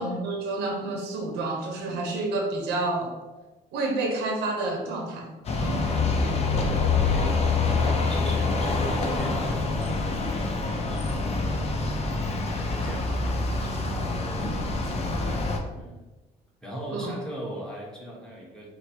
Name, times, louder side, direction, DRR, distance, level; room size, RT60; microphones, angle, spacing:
voice 1, 0.0-3.1 3.7-5.3 5.6-5.9 16.9-17.1, right 2 dB, 80° right, 1 dB, 1.0 m, -29 dB
sound 1, 5.5-15.6, left 3 dB, 40° left, 0.6 m, -26 dB
voice 2, 6.5-16.0 16.6-18.7, right 1 dB, 5° left, -4 dB, 1.2 m, -39 dB
5.5 x 2.2 x 3.5 m, 1.2 s
cardioid pair, 110°, 17 cm